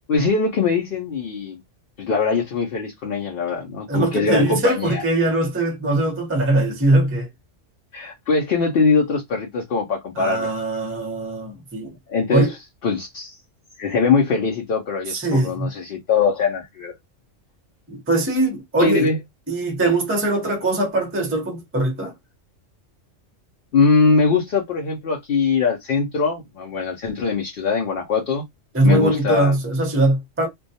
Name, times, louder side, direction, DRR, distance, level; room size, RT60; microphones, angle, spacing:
voice 1, 0.1-1.6 2.0-5.0 7.9-10.5 12.1-12.6 12.8-13.4 13.8-16.9 18.8-19.2 23.7-28.4 28.8-29.5, left 4 dB, 55° left, 0.7 m, -21 dB
voice 2, 3.9-7.3 10.2-12.0 12.3-12.5 15.1-15.7 17.9-19.1 19.5-22.1 28.7-30.5, right 2 dB, 15° right, 0.5 m, -21 dB
2.3 x 2.2 x 2.6 m
omnidirectional pair, 1.3 m